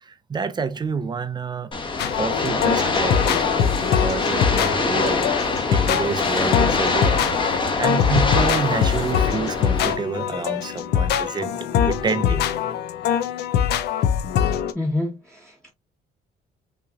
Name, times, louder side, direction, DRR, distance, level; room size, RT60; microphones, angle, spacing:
voice 1, 0.0-1.7 2.1-12.5, right 5 dB, 25° right, 0.7 m, -28 dB
sound 1, 1.7-9.9, left 3 dB, 30° left, 1.3 m, -24 dB
sound 2, 2.0-14.7, left 9 dB, 75° left, 0.6 m, -23 dB
voice 2, 14.7-15.7, left 2 dB, 5° left, 1.2 m, -27 dB
5.7 x 3.1 x 2.4 m
cardioid pair, 110°, 17 cm